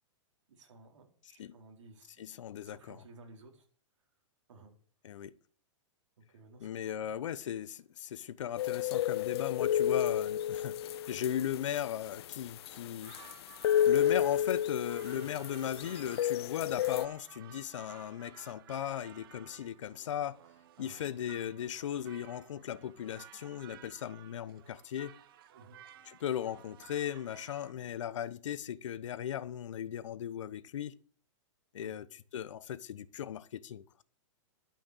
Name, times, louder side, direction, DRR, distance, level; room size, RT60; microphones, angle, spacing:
voice 1, 0.5-2.3 2.6-3.6 4.5-4.7 6.2-7.1 15.1-15.3 20.8-21.0 25.5-25.8 31.8-32.0, right 3 dB, 70° right, 4.3 m, -56 dB
voice 2, 2.2-3.0 5.0-5.3 6.6-10.8 11.1-13.2 13.9-20.4 20.8-25.2 26.1-30.9 31.7-34.0, left 10 dB, 75° left, 1.0 m, -37 dB
sound 1, 8.6-17.1, left 10 dB, 55° left, 0.5 m, -31 dB
sound 2, 12.6-27.7, right 11 dB, 45° right, 1.0 m, -56 dB
11.5 x 6.0 x 8.7 m
hypercardioid pair, 165°, 16 cm